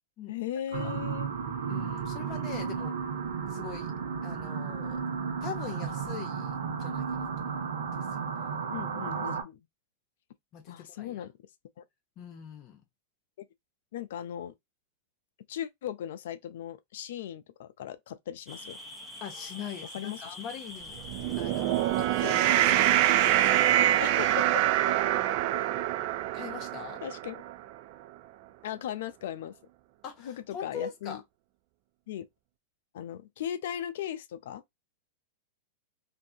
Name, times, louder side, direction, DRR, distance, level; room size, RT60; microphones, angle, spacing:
voice 1, 0.3-1.3 8.7-9.6 10.7-11.3 11.8-11.9 13.4-13.5 13.9-14.5 15.5-18.8 19.9-20.4 24.0-24.5 24.9-25.0 25.3-25.9 27.0-27.4 28.6-29.6 30.2-31.2 32.1-32.3 32.9-34.6, left 10 dB, 70° left, 0.4 m, -38 dB
sound 1, 0.7-9.4, right 6 dB, 85° right, 0.8 m, -34 dB
voice 2, 1.7-2.9 3.5-3.9 4.2-5.0 5.4-8.6 10.5-11.2 12.2-12.8 19.2-21.0 21.4-23.0 26.3-27.0 30.0-31.2, left 8 dB, 40° left, 0.8 m, -42 dB
sound 2, 18.5-23.5, left 1 dB, 10° left, 0.8 m, -44 dB
sound 3, 21.0-27.5, right 13 dB, 55° right, 0.3 m, -25 dB
2.6 x 2.3 x 2.6 m
hypercardioid pair, 120°, 0 cm